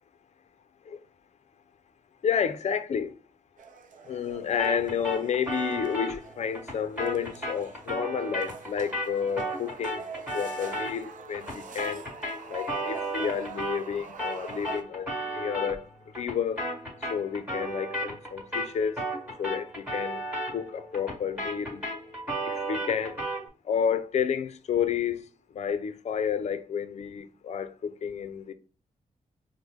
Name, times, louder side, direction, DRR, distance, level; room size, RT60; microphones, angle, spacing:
voice 1, 2.2-3.1 4.0-10.0 10.3-12.0 12.5-15.9 16.2-16.6 17.1-19.0 19.4-20.2 20.5-21.8 22.4-23.2 23.6-25.2 25.5-28.5, left 7 dB, 55° left, 0.5 m, -30 dB
sound 1, 3.6-14.8, right 4 dB, 70° right, 0.5 m, -45 dB
sound 2, 4.6-13.9 14.2-23.5, right 1 dB, 10° right, 1.8 m, -35 dB
4.9 x 2.1 x 3.5 m
wide cardioid pair, 140°, 14 cm